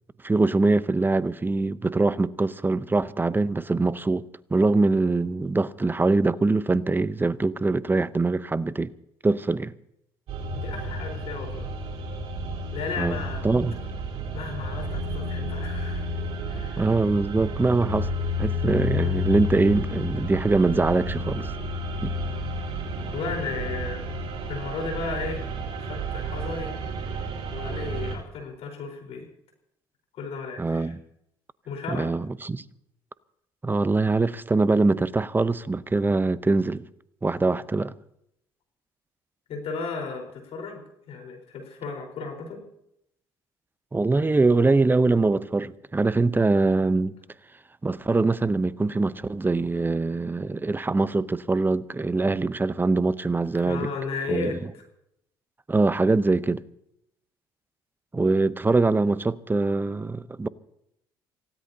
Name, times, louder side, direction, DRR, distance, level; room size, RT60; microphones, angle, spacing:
voice 1, 0.2-4.2 4.5-8.9 9.2-9.7 13.0-13.2 13.4-13.8 16.8-18.1 18.4-21.5 22.0-22.1 30.6-31.0 31.9-32.6 33.6-36.8 37.2-37.9 43.9-47.1 47.8-53.9 54.3-54.5 55.7-56.6 58.1-60.5, right 3 dB, 15° right, 0.8 m, -23 dB
sound 1, 10.3-28.2, equal, 60° right, 4.2 m, -31 dB
voice 2, 10.5-11.7 12.7-13.4 14.3-16.1 16.5-16.9 18.9-19.2 23.1-24.0 24.4-25.5 25.8-26.7 27.5-29.3 30.1-30.9 31.6-32.1 39.5-42.6 53.6-54.6, left 4 dB, 60° left, 4.3 m, -34 dB
27.0 x 16.5 x 2.8 m
hypercardioid pair, 60°, 12 cm